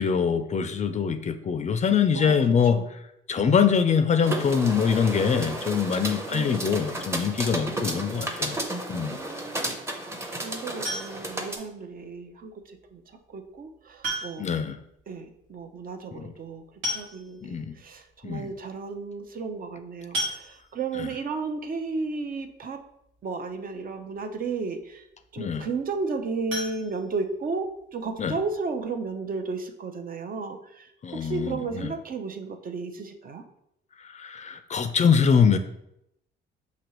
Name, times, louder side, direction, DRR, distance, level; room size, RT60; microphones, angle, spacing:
voice 1, 0.0-3.0 3.3-8.6 8.9-9.2 14.4-14.8 16.1-16.3 17.4-17.8 18.2-18.5 20.9-21.1 25.4-25.7 28.2-28.4 31.0-31.9 34.0-35.6, left 6 dB, 35° left, 9 dB, 0.4 m, -24 dB
sound 1, 4.2-11.6, right 1 dB, 15° right, 0.8 m, -33 dB
voice 2, 7.7-8.4 8.9-13.0 13.3-14.5 15.1-22.8 23.2-25.0 25.3-30.9 31.2-33.4, right 4 dB, 45° right, 6 dB, 0.6 m, -34 dB
sound 2, 10.8-11.5 13.0-13.1 14.0-14.6 14.9-15.0 15.3-15.4 16.4-16.5 16.8-17.5 18.1-18.2 18.5-18.7 20.1-21.0 26.5-27.7 28.0-28.1 28.6-28.7 29.0-29.1, equal, 85° right, 1.4 m, -33 dB
5.9 x 2.8 x 3.1 m, 0.79 s
cardioid pair, 90°, 20 cm